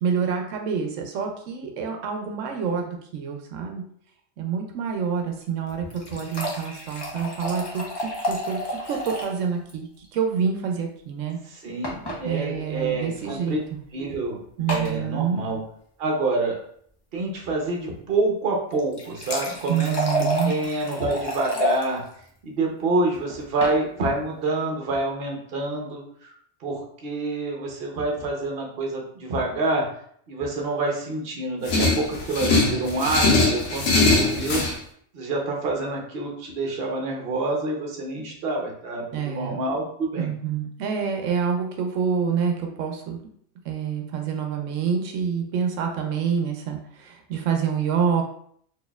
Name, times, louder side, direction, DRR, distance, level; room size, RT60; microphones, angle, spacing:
voice 1, 0.0-3.8 4.4-11.4 12.2-13.6 14.6-15.4 19.7-20.5 39.1-39.6 40.2-43.2 43.6-48.2, right 7 dB, 85° right, 3 dB, 0.9 m, -27 dB
sound 1, 5.7-9.4 9.7-9.8 10.0-10.1 11.8-12.2 13.2-13.3 14.7-15.0 18.7-21.8 23.3-23.8, equal, 30° left, 0.5 m, -29 dB
voice 2, 11.4-13.6 13.9-14.4 14.7-15.6 16.0-16.6 17.1-20.0 20.4-22.0 22.4-26.3 26.6-29.9 30.3-34.6 35.1-40.3, right 2 dB, 55° right, 0 dB, 0.9 m, -27 dB
sound 2, 31.7-34.7, left 3 dB, 80° left, 1.0 m, -21 dB
4.1 x 2.7 x 2.2 m, 0.63 s
omnidirectional pair, 1.3 m